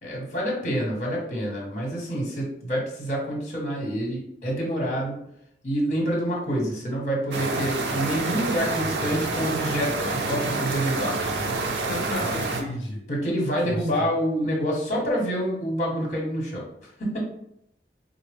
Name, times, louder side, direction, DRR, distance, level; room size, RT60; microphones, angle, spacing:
voice 1, 0.0-5.2 5.6-11.3 12.2-12.3 13.1-16.6 17.0-17.2, equal, 45° left, -2 dB, 1.1 m, -27 dB
sound 1, 7.3-12.6, right 3 dB, 85° right, 0.5 m, -28 dB
voice 2, 11.6-13.0 13.6-13.9, left 1 dB, 85° left, 0 dB, 0.6 m, -33 dB
4.0 x 2.0 x 3.4 m, 0.73 s
head